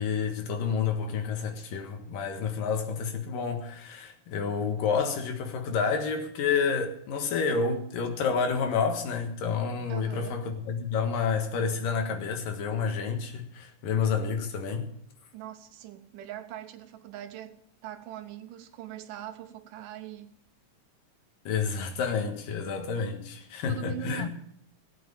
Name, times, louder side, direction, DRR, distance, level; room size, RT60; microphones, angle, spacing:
voice 1, 0.0-14.9 21.4-24.3, left 5 dB, 80° left, 3.3 m, -29 dB
voice 2, 9.9-10.4 15.3-20.3 23.6-24.3, right 11 dB, 80° right, 2.6 m, -41 dB
16.5 x 7.7 x 8.6 m
omnidirectional pair, 3.8 m